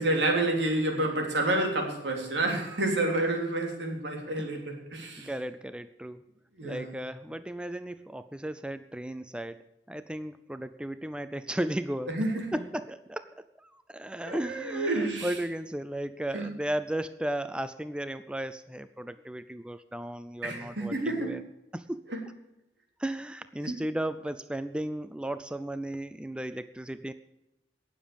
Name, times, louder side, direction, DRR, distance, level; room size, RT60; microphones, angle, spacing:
voice 1, 0.0-5.3 6.6-6.9 12.1-12.5 14.2-15.3 16.3-16.5 20.4-21.4 22.1-22.2 23.6-23.7, right 2 dB, 75° right, 2 dB, 3.5 m, -29 dB
voice 2, 5.2-6.2 6.6-9.6 9.9-12.2 12.5-21.4 21.7-22.0 23.0-27.1, right 1 dB, 5° right, 12 dB, 0.4 m, -35 dB
18.5 x 7.4 x 7.1 m, 0.94 s
head